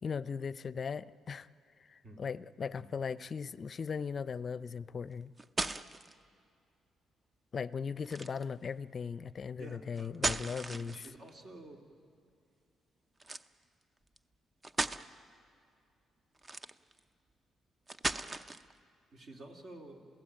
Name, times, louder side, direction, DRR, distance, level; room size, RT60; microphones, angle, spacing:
voice 1, 0.0-1.5 1.9-5.3 7.5-11.1, left 6 dB, 45° left, 17 dB, 0.5 m, -38 dB
sound 1, 5.1-6.1 8.0-8.5 10.0-11.3 13.2-13.5 14.2-14.3 14.6-15.0 16.4-17.0 17.9-18.7, right 2 dB, 25° right, 0.7 m, -36 dB
voice 2, 9.6-10.1 10.7-11.8 19.1-20.1, right 2 dB, 55° right, 2 dB, 3.1 m, -50 dB
28.5 x 16.5 x 8.9 m, 2.4 s
cardioid pair, 90°, 0 cm